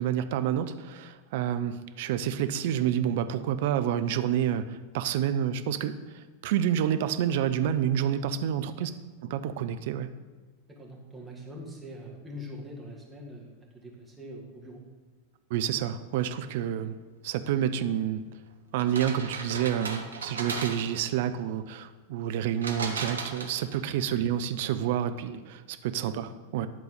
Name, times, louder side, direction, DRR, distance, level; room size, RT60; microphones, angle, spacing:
voice 1, 0.0-6.0 6.4-8.9 9.3-10.1 15.5-16.9 17.2-18.2 18.7-26.7, right 10 dB, 50° right, 10 dB, 0.5 m, -28 dB
voice 2, 10.7-14.8 26.0-26.2, equal, 10° right, -3 dB, 2.0 m, -43 dB
sound 1, 18.8-21.1 22.6-23.9, right 4 dB, 70° right, 1.0 m, -36 dB
10.5 x 3.9 x 6.7 m, 1.4 s
figure-of-eight pair, 90°, 0 cm